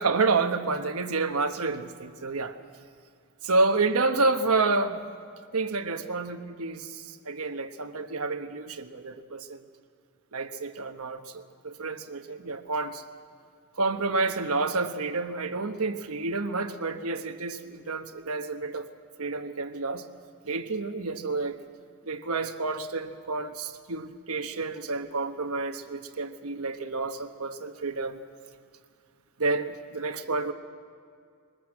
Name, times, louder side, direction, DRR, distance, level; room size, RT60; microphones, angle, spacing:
voice 1, 0.0-2.6 3.4-5.0 5.5-9.6 10.3-13.0 13.8-18.9 19.2-20.0 20.4-21.6 22.0-28.2 29.4-30.5, right 3 dB, 80° right, 8 dB, 1.2 m, -29 dB
22.0 x 20.5 x 7.7 m, 2.2 s
head